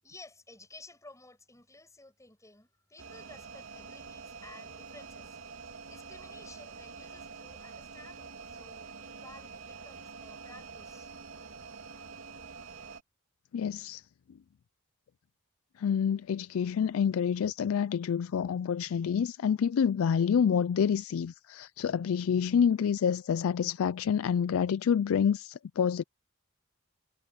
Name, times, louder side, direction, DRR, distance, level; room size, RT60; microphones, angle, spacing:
voice 1, 0.0-5.4 5.8-11.1, left 2 dB, 15° left, 6.9 m, -54 dB
sound 1, 3.0-13.0, right 5 dB, 75° right, 3.1 m, -46 dB
voice 2, 13.5-14.1 15.8-26.0, left 7 dB, 85° left, 0.4 m, -28 dB
head